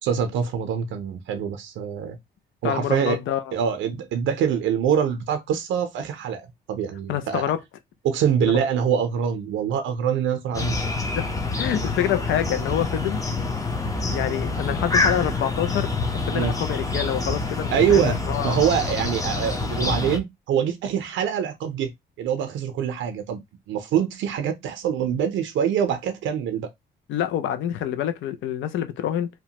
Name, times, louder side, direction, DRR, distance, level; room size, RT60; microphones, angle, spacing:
voice 1, 0.0-2.2 2.6-3.2 3.5-7.5 8.0-10.7 16.3-16.5 17.7-18.2 18.4-21.9 22.2-23.4 23.7-26.7, right 8 dB, 80° right, 0.5 m, -24 dB
voice 2, 2.6-3.5 7.1-7.6 8.4-8.6 11.1-11.3 11.6-13.2 14.1-18.0 18.3-18.6 27.1-29.3, left 10 dB, 75° left, 0.4 m, -26 dB
sound 1, 10.5-20.2, left 3 dB, 15° left, 0.6 m, -26 dB
2.8 x 2.1 x 2.8 m
cardioid pair, 90°, 20 cm